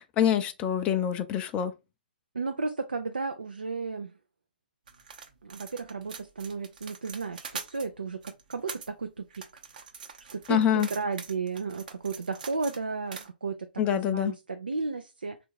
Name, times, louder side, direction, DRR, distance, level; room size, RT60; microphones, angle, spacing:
voice 1, 0.0-1.7 10.5-10.9 13.8-14.3, left 9 dB, 25° left, 0.4 m, -25 dB
voice 2, 2.3-4.1 5.4-9.5 10.3-15.4, right 4 dB, 80° right, 0.5 m, -34 dB
sound 1, 4.9-7.9 8.2-8.9 9.3-12.8 13.1-13.3, right 6 dB, 60° right, 0.9 m, -43 dB
3.5 x 2.5 x 4.5 m
figure-of-eight pair, 120°, 5 cm